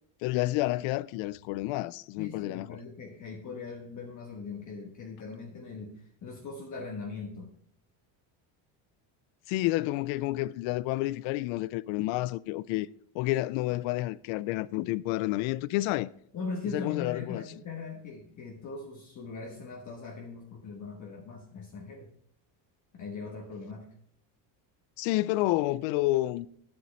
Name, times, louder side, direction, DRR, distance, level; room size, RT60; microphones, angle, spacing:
voice 1, 0.2-2.7 9.5-12.9 13.1-16.1 16.7-17.4 25.0-26.5, left 17 dB, 75° left, 0.5 m, -29 dB
voice 2, 2.2-7.5 16.3-22.1 22.9-23.9, left 4 dB, 40° left, 1.2 m, -40 dB
9.4 x 7.4 x 4.1 m
cardioid pair, 125°, 47 cm